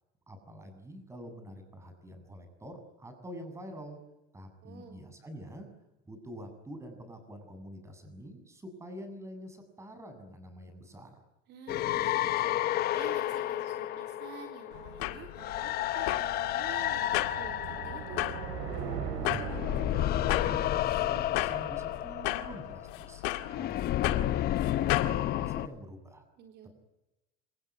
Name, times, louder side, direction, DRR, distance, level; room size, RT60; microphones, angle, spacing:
voice 1, 0.3-4.0 4.3-5.7 6.0-11.2 19.2-19.9 20.2-23.2 23.5-24.4 24.7-26.2, equal, 15° right, 8 dB, 7.4 m, -46 dB
voice 2, 4.6-5.0 11.5-12.5 12.9-18.4 26.4-26.7, right 7 dB, 55° right, 4 dB, 4.0 m, -49 dB
sound 1, 11.7-19.0 19.4-25.7, left 13 dB, 50° left, 1.1 m, -31 dB
sound 2, 14.7-25.2, left 17 dB, 85° left, 2.0 m, -36 dB
sound 3, 15.2-22.5, right 7 dB, 90° right, 5.3 m, -41 dB
27.5 x 19.5 x 9.9 m, 0.98 s
cardioid pair, 130°, 21 cm